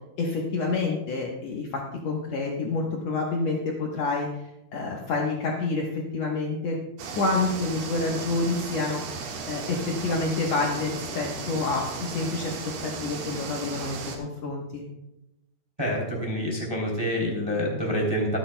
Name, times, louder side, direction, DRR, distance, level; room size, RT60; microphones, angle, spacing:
voice 1, 0.2-4.4 4.7-6.8 7.1-9.0 9.5-14.8, left 3 dB, 85° left, -2 dB, 1.4 m, -28 dB
sound 1, 7.0-14.2, right 5 dB, 75° right, 3.4 m, -35 dB
voice 2, 15.8-18.4, equal, 10° right, -2 dB, 1.9 m, -27 dB
24.0 x 8.7 x 2.2 m, 0.91 s
omnidirectional pair, 4.8 m